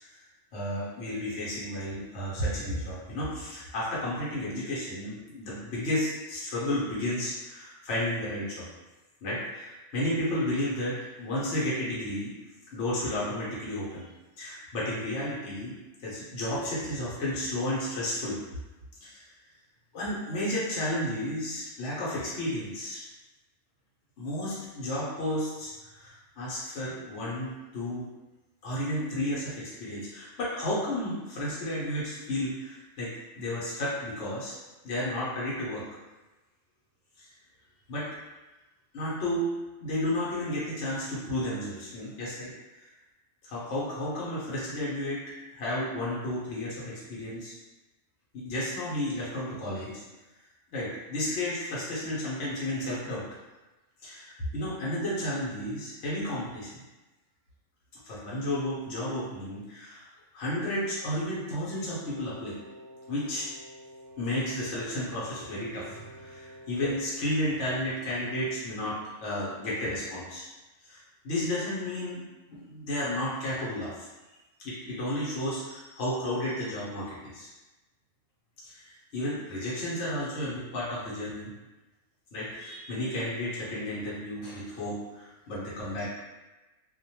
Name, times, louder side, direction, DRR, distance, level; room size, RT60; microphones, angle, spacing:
voice 1, 0.5-8.7 9.2-12.3 12.7-14.1 14.4-18.4 19.0-19.2 19.9-23.0 24.2-28.1 28.6-34.6 34.8-35.8 37.2-37.3 37.9-38.1 38.9-39.5 39.8-42.5 42.8-42.9 43.4-45.2 45.5-47.5 48.3-50.0 50.7-53.2 54.0-56.8 58.0-60.1 60.3-62.6 63.1-63.5 64.2-70.5 70.8-72.2 72.5-74.1 74.6-77.5 78.6-81.5 82.3-86.1, left 1 dB, 70° left, -8 dB, 1.1 m, -32 dB
Wind instrument woodwind instrument, 61.9-67.7, equal, 65° right, 0.7 m, -49 dB
2.5 x 2.1 x 2.8 m, 1.1 s
omnidirectional pair, 1.3 m